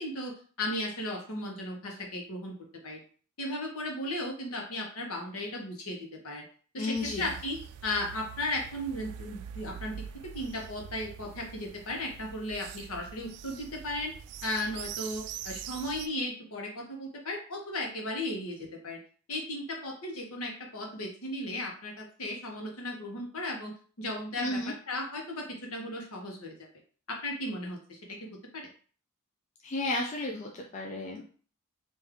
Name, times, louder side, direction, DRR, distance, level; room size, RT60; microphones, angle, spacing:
voice 1, 0.0-2.5 2.8-3.0 3.4-6.0 6.2-6.4 6.7-7.6 7.8-9.9 10.3-14.1 14.4-19.0 19.3-23.7 24.0-24.6 24.9-25.5 25.7-26.7 27.1-28.0 28.5-28.7, left 1 dB, 70° left, 1 dB, 1.0 m, -35 dB
voice 2, 6.8-7.3 24.4-24.7 29.6-31.4, left 2 dB, 30° left, 1 dB, 0.4 m, -33 dB
sound 1, 6.9-16.1, right 9 dB, 85° right, 0.3 m, -44 dB
3.6 x 2.6 x 3.5 m, 0.42 s
head